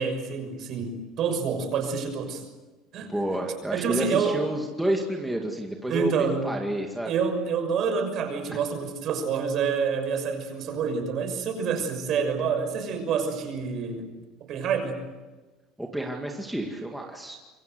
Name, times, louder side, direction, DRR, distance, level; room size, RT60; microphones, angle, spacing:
voice 1, 0.0-2.4 2.9-3.2 3.7-4.4 5.9-6.5 7.0-14.1 14.5-15.0, right 6 dB, 45° right, 6 dB, 6.3 m, -27 dB
voice 2, 3.1-7.1 15.8-17.4, right 1 dB, 5° right, 0 dB, 2.2 m, -30 dB
27.0 x 23.0 x 8.0 m, 1.2 s
cardioid pair, 155°, 0 cm